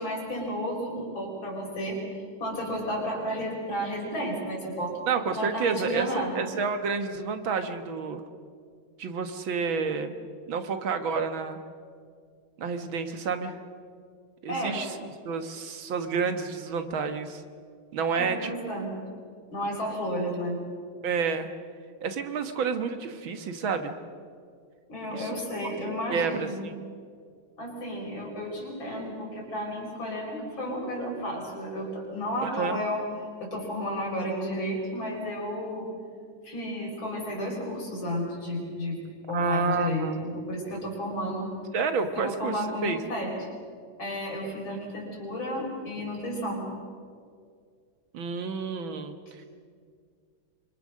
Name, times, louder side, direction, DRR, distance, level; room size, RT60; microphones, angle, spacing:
voice 1, 0.0-2.0 2.4-4.9 5.3-6.5 14.5-14.8 18.1-18.9 19.5-20.6 24.9-26.6 27.6-33.0 33.4-35.9 36.4-39.0 39.3-41.5 42.1-43.3 44.0-46.7, equal, 70° left, -1 dB, 6.1 m, -32 dB
voice 2, 5.1-8.2 9.0-10.1 10.5-11.6 12.6-13.6 14.4-17.4 17.9-18.5 21.0-21.5 22.0-23.9 25.1-25.7 26.1-26.7 32.4-32.8 39.3-40.2 41.7-43.0 48.1-49.4, right 5 dB, 70° right, 8 dB, 2.1 m, -30 dB
25.5 x 25.5 x 6.4 m, 2.1 s
omnidirectional pair, 2.2 m